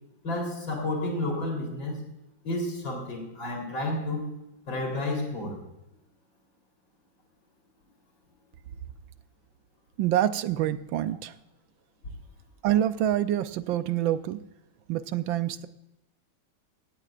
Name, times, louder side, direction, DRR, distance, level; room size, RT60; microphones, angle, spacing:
voice 1, 0.2-2.0 2.4-4.3 4.7-5.6, left 1 dB, 70° left, 2 dB, 4.3 m, -31 dB
voice 2, 10.0-11.3 12.6-14.4 14.9-15.7, right 12 dB, 80° right, 12 dB, 1.4 m, -26 dB
17.5 x 16.0 x 2.5 m, 0.91 s
omnidirectional pair, 2.1 m